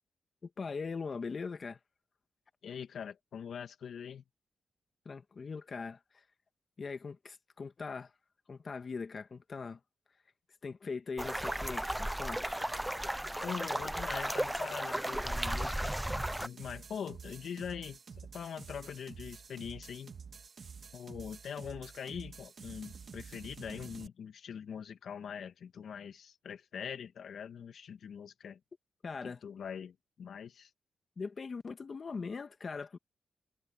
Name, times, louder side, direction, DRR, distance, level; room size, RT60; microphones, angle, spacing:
voice 1, 0.4-1.8 5.1-6.2 6.8-8.1 8.5-9.8 10.6-12.7 29.0-29.4 31.2-33.0, left 4 dB, 50° left, 1.7 m, -41 dB
voice 2, 2.6-4.2 13.4-15.9 16.4-18.0 18.3-20.1 20.9-28.6 29.2-30.7, left 7 dB, 80° left, 1.8 m, -43 dB
sound 1, 11.2-16.5, right 1 dB, 5° right, 0.7 m, -35 dB
sound 2, 16.1-24.1, right 6 dB, 60° right, 2.0 m, -49 dB
cardioid pair, 80°, 0 cm